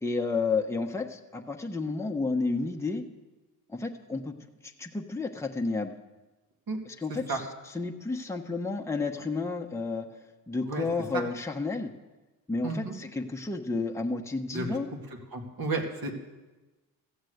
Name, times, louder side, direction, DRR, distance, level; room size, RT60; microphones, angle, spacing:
voice 1, 0.0-3.0 3.7-4.3 4.6-5.9 6.9-7.4 7.7-10.1 10.5-11.9 12.5-14.9, left 3 dB, 5° left, 2 dB, 1.0 m, -31 dB
voice 2, 12.6-12.9 14.5-14.7 15.3-16.1, right 3 dB, 65° right, 1 dB, 2.4 m, -32 dB
14.5 x 8.0 x 8.0 m, 1.2 s
cardioid pair, 75°, 39 cm